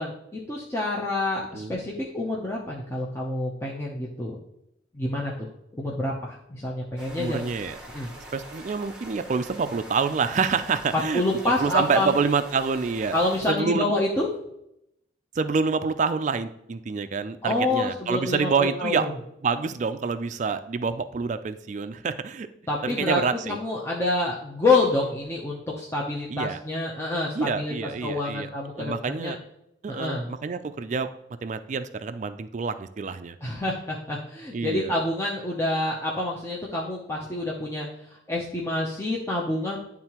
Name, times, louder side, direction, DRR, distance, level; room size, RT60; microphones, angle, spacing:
voice 1, 0.0-4.4 4.9-5.5 5.7-7.5 7.9-8.1 11.1-12.2 13.1-14.3 17.4-19.1 22.7-23.2 23.5-29.3 29.9-30.3 33.4-39.8, left 2 dB, 15° left, -4 dB, 0.6 m, -27 dB
sound 1, 7.0-13.4, right 1 dB, 5° right, 1.0 m, -44 dB
voice 2, 7.2-7.8 8.3-11.2 11.6-13.2 13.5-13.9 15.4-19.1 19.4-22.5 22.8-23.6 26.3-26.6 27.3-28.5 28.8-29.4 29.8-31.1 31.4-33.4 34.5-35.0, right 5 dB, 40° right, 10 dB, 0.3 m, -27 dB
10.5 x 3.6 x 2.9 m, 0.80 s
head